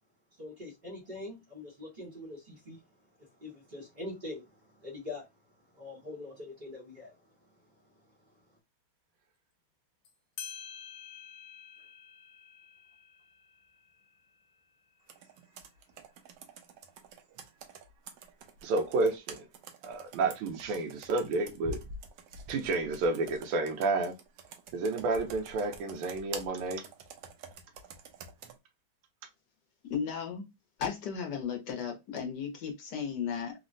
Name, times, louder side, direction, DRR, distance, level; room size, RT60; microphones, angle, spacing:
voice 1, 0.3-8.6, left 2 dB, 40° right, 0.6 m, -45 dB
sound 1, 10.0-10.1 10.4-15.5, left 8 dB, 80° left, 1.4 m, -49 dB
Computer keyboard, 15.1-28.6, right 3 dB, 70° right, 1.1 m, -48 dB
voice 2, 18.6-19.5 19.8-21.8 22.5-24.1 24.7-26.8, right 3 dB, 90° right, 1.5 m, -30 dB
voice 3, 29.9-30.4 30.8-33.5, left 7 dB, 65° left, 1.2 m, -35 dB
3.7 x 2.1 x 2.5 m
omnidirectional pair, 2.3 m